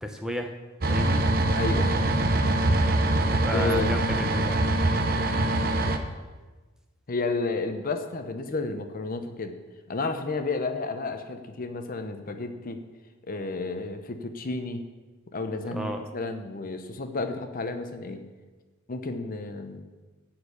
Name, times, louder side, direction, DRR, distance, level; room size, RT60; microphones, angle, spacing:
voice 1, 0.0-0.5 0.9-1.2 3.3-4.6 15.7-16.0, equal, 5° right, 4 dB, 0.6 m, -32 dB
sound 1, 0.8-6.0, right 2 dB, 45° right, 0.7 m, -24 dB
voice 2, 1.5-2.0 3.5-4.0 7.1-9.5 9.9-12.8 13.3-14.8 15.3-18.2 18.9-19.8, left 3 dB, 40° left, 7 dB, 0.7 m, -31 dB
11.5 x 4.5 x 8.2 m, 1.3 s
head